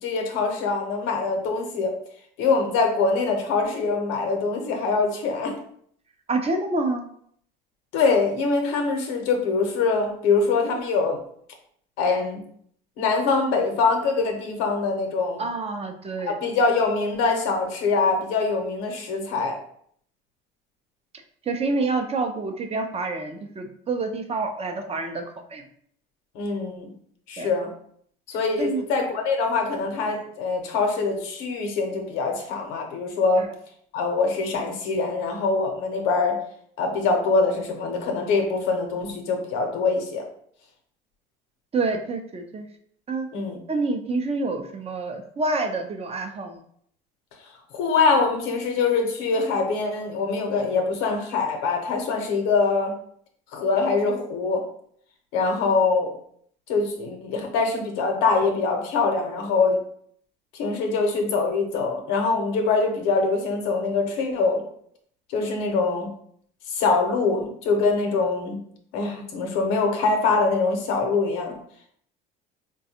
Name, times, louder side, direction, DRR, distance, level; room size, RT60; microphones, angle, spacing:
voice 1, 0.0-1.9 2.4-5.6 7.9-11.2 12.0-12.4 13.0-15.4 16.2-19.6 26.3-26.9 27.3-27.7 28.3-33.5 33.9-36.4 36.8-40.2 43.3-43.6 47.7-52.9 53.5-54.6 55.3-56.1 56.7-59.8 60.5-64.6 65.3-66.1 66.7-68.6 68.9-71.5, left 4 dB, 75° left, 3 dB, 0.8 m, -23 dB
voice 2, 6.3-7.1 15.4-16.3 21.5-25.2 25.5-25.6 27.4-27.5 28.6-28.8 41.7-42.7 43.1-43.3 43.7-46.6, right 3 dB, 30° right, 5 dB, 0.6 m, -27 dB
4.0 x 2.2 x 2.8 m, 0.65 s
supercardioid pair, 80°, 21 cm